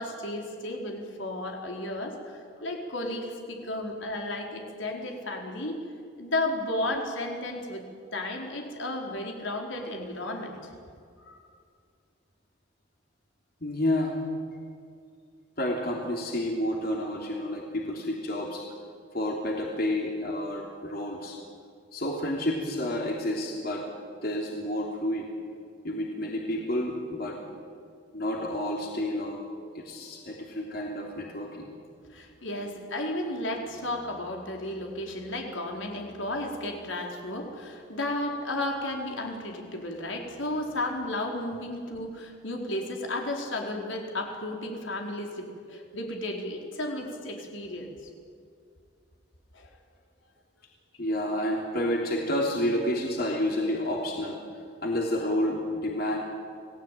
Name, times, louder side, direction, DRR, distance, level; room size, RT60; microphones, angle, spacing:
voice 1, 0.0-5.8 6.2-7.8 8.1-10.7 32.1-47.9 49.5-49.7 51.4-51.5, left 1 dB, 75° left, 1 dB, 4.3 m, -33 dB
voice 2, 13.6-14.1 15.6-18.6 19.1-21.4 21.9-23.8 24.2-25.3 25.8-27.4 28.1-29.4 29.7-31.7 51.0-54.4 54.8-56.2, left 1 dB, 50° left, 0 dB, 3.3 m, -30 dB
28.5 x 19.0 x 9.2 m, 2.3 s
head